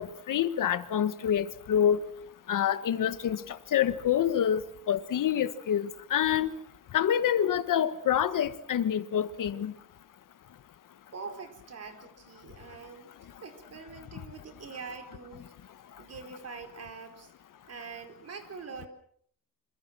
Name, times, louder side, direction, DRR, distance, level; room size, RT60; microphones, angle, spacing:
voice 1, 0.0-2.0 2.5-4.6 4.9-6.5 6.9-9.7, left 9 dB, 70° left, 1.5 m, -27 dB
voice 2, 11.1-13.1 13.4-15.5 16.0-17.3 17.6-18.9, right 5 dB, 50° right, 4.8 m, -44 dB
27.5 x 26.5 x 6.2 m
wide cardioid pair, 160°, 33 cm